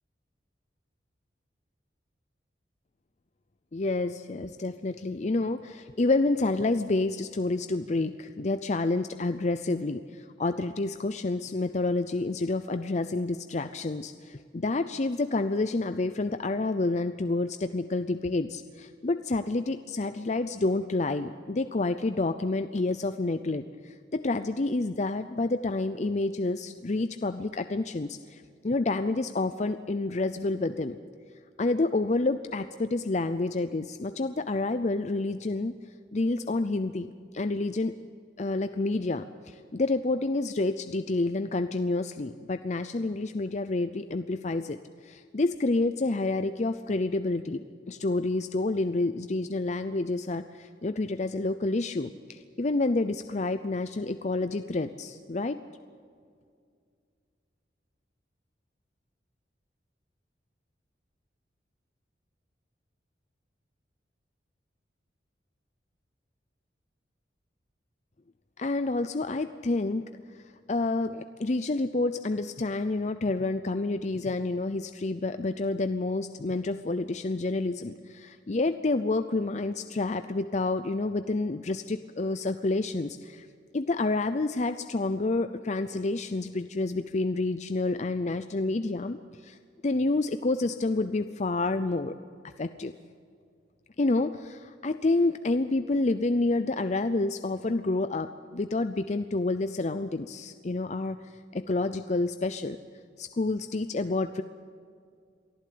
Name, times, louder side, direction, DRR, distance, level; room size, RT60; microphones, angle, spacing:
voice 1, 3.7-31.0 31.6-35.7 36.1-37.9 38.4-55.6 68.6-70.0 70.3-70.4 70.7-83.5 83.7-89.6 89.8-92.1 92.6-92.9 94.0-102.8 103.2-104.4, left 2 dB, 40° left, 10 dB, 0.5 m, -29 dB
23.5 x 14.5 x 8.6 m, 2.2 s
head